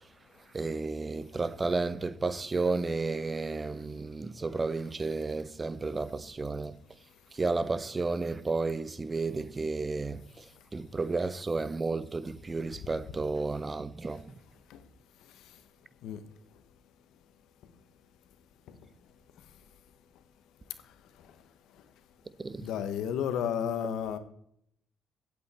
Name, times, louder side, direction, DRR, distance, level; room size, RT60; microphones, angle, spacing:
voice 1, 0.5-6.7 7.3-10.4 10.7-14.2 22.4-22.7, right 3 dB, 25° right, 0.7 m, -32 dB
voice 2, 22.6-24.2, left 8 dB, 90° left, 1.2 m, -32 dB
16.5 x 8.4 x 4.3 m
cardioid pair, 90°, 0 cm